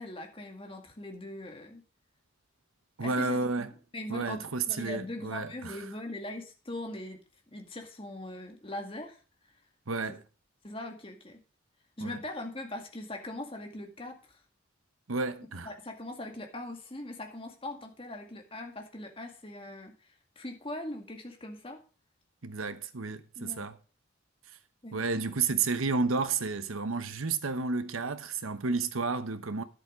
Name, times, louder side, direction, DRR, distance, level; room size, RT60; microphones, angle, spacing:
voice 1, 0.0-1.8 3.0-7.2 7.5-9.2 10.6-11.4 12.0-14.4 15.6-21.8 23.4-23.7 24.8-25.0, left 1 dB, 25° left, 2.0 m, -41 dB
voice 2, 3.0-3.7 4.1-5.8 9.9-10.2 12.0-12.2 15.1-15.7 22.4-23.8 24.9-29.6, right 4 dB, 85° right, 1.0 m, -31 dB
11.0 x 7.9 x 5.1 m
head